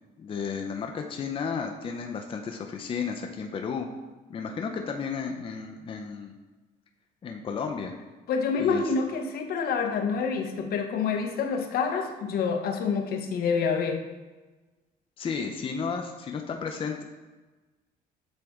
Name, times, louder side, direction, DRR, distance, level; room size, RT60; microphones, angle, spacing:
voice 1, 0.2-3.9 4.3-6.3 7.2-7.9 8.6-8.8 15.2-17.0, left 5 dB, 30° left, 3 dB, 0.5 m, -33 dB
voice 2, 8.3-14.0, left 5 dB, 65° left, 5 dB, 0.8 m, -27 dB
7.8 x 3.4 x 3.5 m, 1.2 s
cardioid pair, 110°, 17 cm